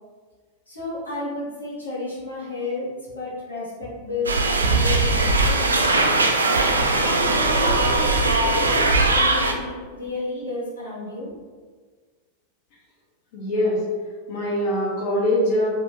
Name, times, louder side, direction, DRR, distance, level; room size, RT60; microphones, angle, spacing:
voice 1, 0.7-5.8 6.8-11.3, left 3 dB, 80° left, -7 dB, 1.1 m, -32 dB
sound 1, 4.3-9.5, right 2 dB, 75° right, 0.3 m, -20 dB
voice 2, 13.3-13.8 14.3-15.7, left 1 dB, 50° left, -6 dB, 1.0 m, -23 dB
3.7 x 2.6 x 2.9 m, 1.5 s
figure-of-eight pair, 90°, 0 cm